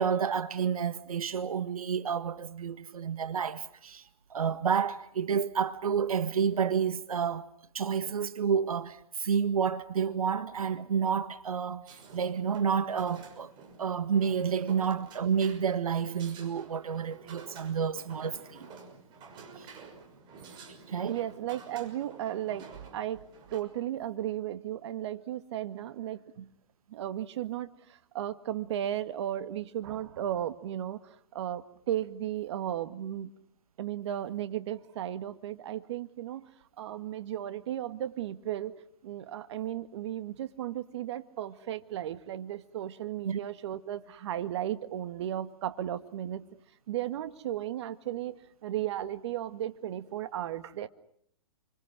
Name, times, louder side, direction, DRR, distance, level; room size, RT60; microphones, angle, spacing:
voice 1, 0.0-7.5 7.7-13.5 13.8-18.7 19.6-19.7 20.9-21.2 43.2-43.4, right 7 dB, 80° right, 1.6 m, -30 dB
sound 1, 11.8-23.6, right 5 dB, 25° right, 6.0 m, -51 dB
voice 2, 21.1-23.3 23.5-26.5 26.9-31.0 31.3-33.3 33.8-36.5 36.8-38.8 39.0-46.5 46.9-50.9, right 11 dB, 50° right, 1.8 m, -35 dB
29.0 x 26.0 x 6.1 m
hypercardioid pair, 140°, 18 cm